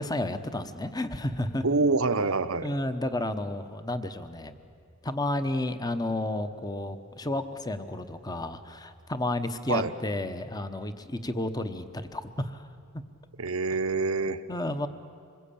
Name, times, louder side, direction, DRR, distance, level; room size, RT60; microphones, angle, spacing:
voice 1, 0.0-1.6 2.6-4.6 5.0-12.7 14.5-14.9, left 1 dB, 20° left, 10 dB, 1.0 m, -31 dB
voice 2, 1.6-2.7 9.7-9.9 13.4-14.4, right 3 dB, 85° right, 9 dB, 1.0 m, -26 dB
26.5 x 21.5 x 8.6 m, 2.3 s
head